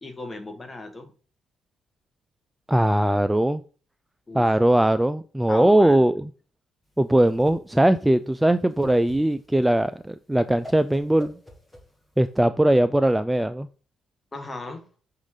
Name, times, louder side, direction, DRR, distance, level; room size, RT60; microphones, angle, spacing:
voice 1, 0.0-1.1 4.3-4.4 5.5-6.0 14.3-14.9, left 2 dB, 25° left, 5 dB, 1.7 m, -36 dB
voice 2, 2.7-3.6 4.3-6.3 7.0-11.3 12.2-13.7, right 1 dB, 10° right, 12 dB, 0.4 m, -20 dB
Whoosh swoosh swish, 6.9-12.4, left 1 dB, 5° left, 2.1 m, -47 dB
6.3 x 3.8 x 4.9 m, 0.38 s
supercardioid pair, 65°, 0 cm